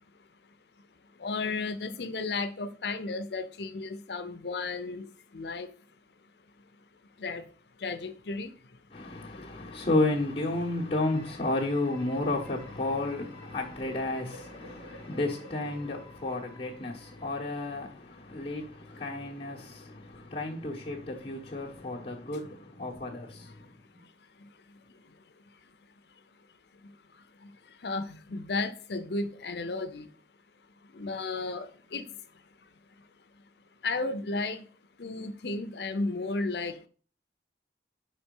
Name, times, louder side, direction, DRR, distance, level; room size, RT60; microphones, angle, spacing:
voice 1, 1.2-5.7 7.2-7.5 7.8-8.8 14.9-15.0 18.4-18.5 20.2-20.3 24.0-24.1 24.4-25.1 25.6-25.7 26.8-30.1 30.8-32.2 32.6-32.7 33.0-33.1 33.8-34.7 35.0-36.9, left 3 dB, 65° left, 0.6 m, -34 dB
voice 2, 8.9-24.0, left 2 dB, 30° left, 1.0 m, -32 dB
sound 1, 11.1-17.8, equal, 40° right, 1.4 m, -52 dB
5.3 x 4.2 x 5.3 m
head